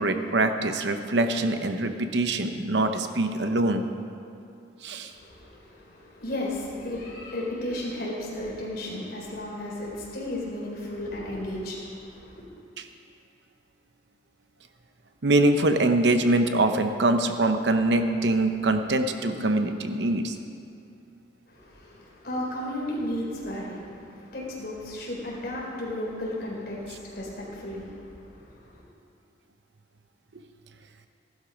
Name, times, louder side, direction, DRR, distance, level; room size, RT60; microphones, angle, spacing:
voice 1, 0.0-3.8 4.8-5.1 12.8-12.9 15.2-20.3, right 2 dB, 65° right, 7 dB, 0.8 m, -24 dB
voice 2, 5.1-12.4 21.5-28.8, left 1 dB, 55° left, -4 dB, 4.0 m, -34 dB
15.5 x 12.0 x 5.2 m, 2.6 s
head